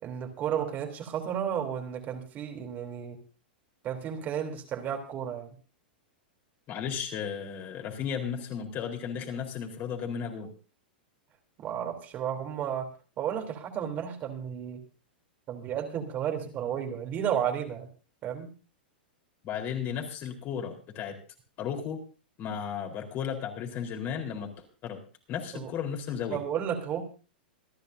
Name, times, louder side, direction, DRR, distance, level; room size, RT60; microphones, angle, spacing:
voice 1, 0.0-3.2 3.8-5.5 11.6-12.9 13.2-14.8 15.5-17.9 18.2-18.5 25.5-25.7 26.3-27.0, right 9 dB, 35° right, 4 dB, 3.3 m, -33 dB
voice 2, 6.7-10.5 19.4-21.1 21.6-22.0 22.4-24.5 24.8-25.0 25.3-26.4, left 7 dB, 40° left, 2 dB, 4.1 m, -34 dB
27.0 x 10.5 x 2.7 m, 0.35 s
hypercardioid pair, 120°, 5 cm